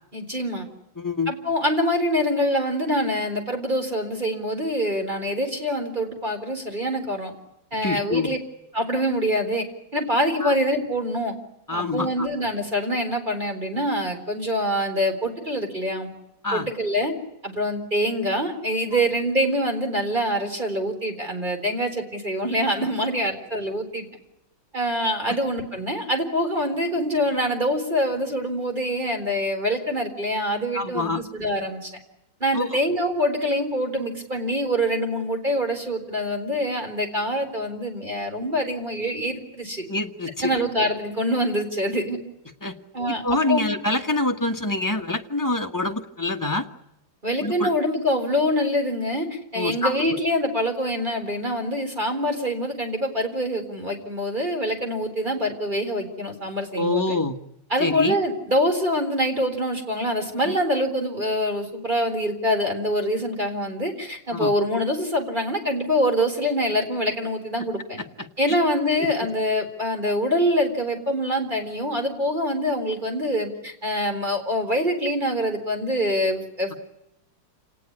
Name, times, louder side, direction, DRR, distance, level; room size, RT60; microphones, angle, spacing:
voice 1, 0.1-0.7 1.3-7.3 7.7-8.4 8.7-9.7 9.9-11.3 11.7-16.1 16.5-17.1 17.4-24.1 24.7-31.9 32.4-39.8 40.4-42.2 42.9-43.7 47.2-57.2 57.7-68.0 68.4-76.8, equal, 20° right, 4 dB, 4.2 m, -25 dB
voice 2, 1.0-1.3 7.8-8.3 10.4-10.5 11.7-12.3 16.4-16.7 25.3-25.4 30.7-31.2 32.5-32.7 39.9-40.5 42.6-42.8 43.2-46.7 47.4-47.7 49.5-50.2 56.7-57.3 57.8-58.1 60.4-60.6 64.3-64.5 68.2-68.6 69.0-69.1, left 2 dB, 10° left, 4 dB, 1.2 m, -26 dB
28.5 x 19.0 x 9.8 m, 0.84 s
omnidirectional pair, 2.4 m